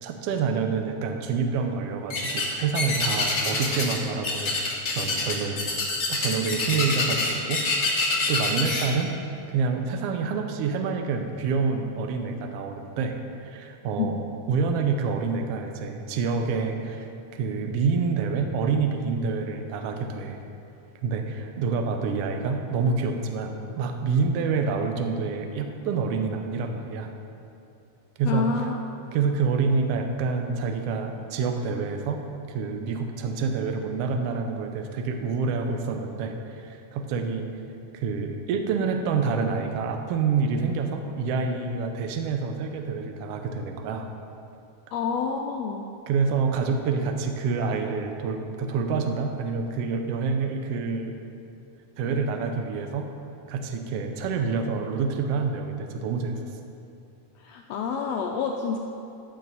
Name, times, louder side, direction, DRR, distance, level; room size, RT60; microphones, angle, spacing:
voice 1, 0.0-4.6 4.9-5.6 6.1-9.1 9.5-14.2 14.5-20.4 21.0-27.1 28.2-28.5 29.1-32.2 32.5-37.5 37.9-44.1 46.1-51.2 52.0-53.1 53.5-56.4, right 5 dB, 75° right, 4 dB, 1.4 m, -27 dB
sound 1, 2.1-2.5 2.7-4.0 4.2-8.8, left 3 dB, 45° left, 1.4 m, -26 dB
voice 2, 28.2-28.8 44.9-45.9 57.4-58.8, left 5 dB, 85° left, 1 dB, 1.5 m, -28 dB
13.5 x 6.7 x 4.1 m, 2.7 s
omnidirectional pair, 3.5 m